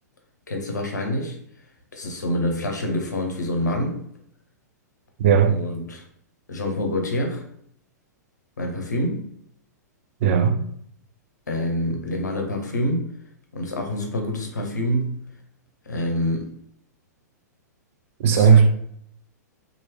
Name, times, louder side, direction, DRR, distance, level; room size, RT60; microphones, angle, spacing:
voice 1, 0.5-1.4 1.9-4.0 5.5-6.0 6.5-7.4 8.6-9.2 11.5-13.1 13.5-15.2 15.8-16.5 18.3-18.6, left 1 dB, 75° left, 0.8 m, -26 dB
voice 2, 5.2-5.6 10.2-10.6 18.2-18.7, right 6 dB, 50° right, 0.4 m, -16 dB
3.0 x 2.6 x 2.8 m
figure-of-eight pair, 105°, 10 cm